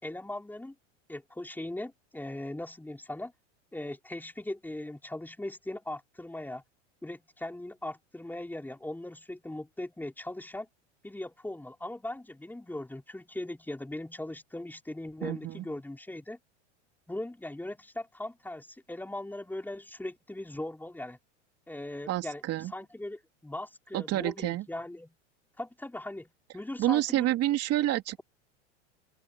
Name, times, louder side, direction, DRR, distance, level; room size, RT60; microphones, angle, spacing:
voice 1, 0.0-0.7 1.1-3.3 3.7-6.6 7.0-10.7 11.0-16.4 17.1-21.2 21.7-22.4 22.7-25.1 25.6-27.3, left 1 dB, 5° left, 4.7 m, -39 dB
voice 2, 15.2-15.6 22.1-22.7 23.9-24.6 26.8-28.2, right 14 dB, 40° right, 3.1 m, -28 dB
open air
hypercardioid pair, 110°, 36 cm